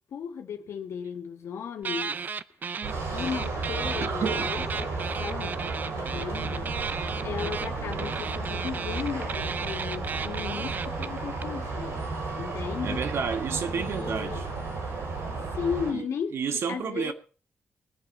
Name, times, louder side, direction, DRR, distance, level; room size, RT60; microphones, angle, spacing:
voice 1, 0.1-2.2 3.1-4.9 5.2-5.6 5.9-6.7 7.2-12.0 12.4-13.0 13.6-14.4 15.5-17.1, left 7 dB, 80° left, 1.8 m, -35 dB
sound 1, 1.8-2.9 3.2-11.4, right 6 dB, 40° right, 0.5 m, -34 dB
sound 2, 2.8-15.9, right 3 dB, 85° right, 7.1 m, -33 dB
voice 2, 4.0-4.6 12.8-14.5 15.9-17.1, right 6 dB, 65° right, 1.5 m, -31 dB
21.5 x 7.5 x 4.3 m
wide cardioid pair, 125°, 5 cm